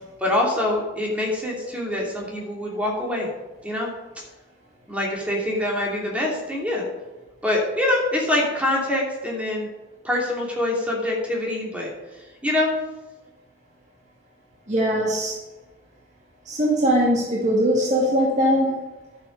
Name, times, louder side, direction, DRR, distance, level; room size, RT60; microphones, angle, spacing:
voice 1, 0.2-3.3 3.6-3.9 4.9-6.9 7.4-9.7 10.0-11.9 12.4-12.7, left 1 dB, 5° right, -2 dB, 2.8 m, -24 dB
voice 2, 14.7-15.3 16.5-18.8, equal, 40° right, -3 dB, 2.2 m, -20 dB
11.5 x 7.9 x 5.3 m, 1.1 s
head